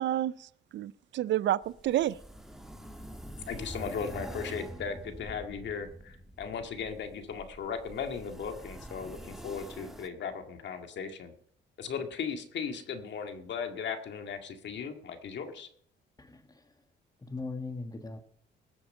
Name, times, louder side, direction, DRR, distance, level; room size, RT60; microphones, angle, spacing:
voice 1, 0.0-2.2, right 13 dB, 65° right, 0.4 m, -30 dB
sound 1, 1.6-10.1, right 1 dB, ahead, 1.5 m, -45 dB
voice 2, 3.5-11.3 11.8-15.7, left 6 dB, 65° left, 2.0 m, -37 dB
voice 3, 16.2-16.7 17.2-18.2, left 3 dB, 20° left, 1.8 m, -40 dB
20.0 x 7.1 x 5.5 m
cardioid pair, 90°, 20 cm